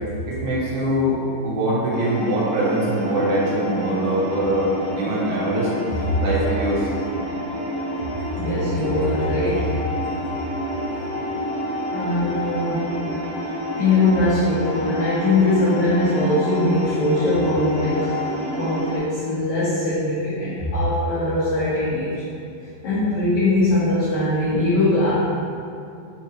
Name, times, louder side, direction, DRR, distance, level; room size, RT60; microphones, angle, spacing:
voice 1, 0.3-1.2 1.4-5.7 6.2-6.9, right 1 dB, 85° right, -7 dB, 3.4 m, -23 dB
sound 1, 1.9-19.0, equal, 60° left, 2.7 m, -28 dB
voice 2, 8.3-9.7 11.9-12.8 13.7-18.1 18.6-22.2 22.8-25.1, left 2 dB, 80° left, -11 dB, 1.6 m, -21 dB
6.9 x 4.6 x 3.0 m, 2.5 s
omnidirectional pair, 4.8 m